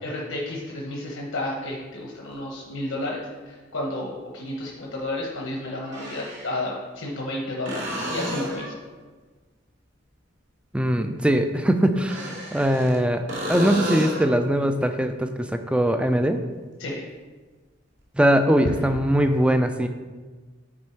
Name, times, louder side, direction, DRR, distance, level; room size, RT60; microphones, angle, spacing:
voice 1, 0.0-3.2 3.5-8.7 16.8-17.0, left 1 dB, 85° left, -2 dB, 1.0 m, -31 dB
sound 1, 2.3-2.4 4.5-4.6 5.8-6.6 7.6-8.8 11.9-13.0 13.3-14.3 18.0-18.1, equal, 65° right, 2.4 m, -31 dB
voice 2, 10.7-16.4 18.2-19.9, equal, 5° right, 7 dB, 0.4 m, -21 dB
9.7 x 4.3 x 4.5 m, 1.4 s
head